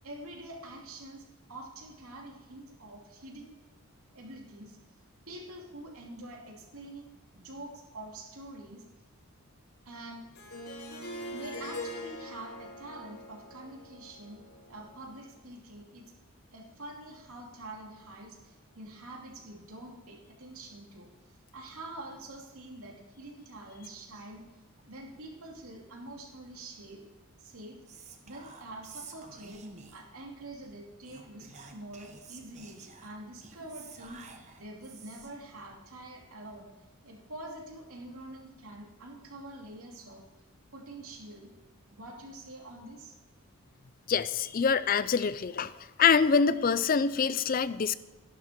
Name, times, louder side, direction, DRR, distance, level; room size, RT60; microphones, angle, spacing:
voice 1, 0.0-3.5 4.1-4.8 5.3-7.1 7.3-8.9 9.9-10.3 11.3-14.4 14.7-16.2 16.5-21.1 21.5-24.4 24.8-27.0 27.4-29.6 29.9-34.2 34.6-36.7 37.0-40.2 40.7-41.5 41.9-43.1, right 1 dB, 75° right, 0 dB, 2.8 m, -46 dB
Harp, 10.3-15.3, left 1 dB, 85° left, 3.9 m, -43 dB
Whispering, 27.9-30.2 31.0-35.4, right 4 dB, 30° right, 1.1 m, -50 dB
voice 2, 44.1-45.7 46.0-47.9, left 6 dB, 40° left, 15 dB, 0.4 m, -25 dB
13.0 x 11.5 x 4.5 m, 1.2 s
head